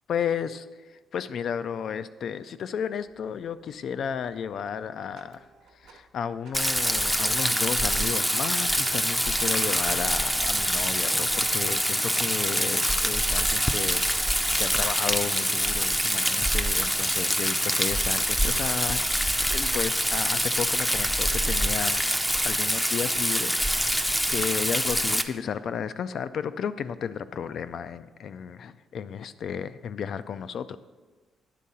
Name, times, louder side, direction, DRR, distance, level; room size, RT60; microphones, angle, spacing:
voice 1, 0.1-5.4 5.7-19.0 19.5-22.0 22.4-23.6 23.9-30.8, left 7 dB, 65° left, 13 dB, 0.3 m, -33 dB
Printer, 3.0-3.7 4.0-4.2 4.6-6.2 6.4-14.6, right 5 dB, 85° right, 0.9 m, -46 dB
Rain, 6.5-25.2, equal, ahead, 0.5 m, -25 dB
10.0 x 3.7 x 5.5 m, 1.3 s
cardioid pair, 90°, 0 cm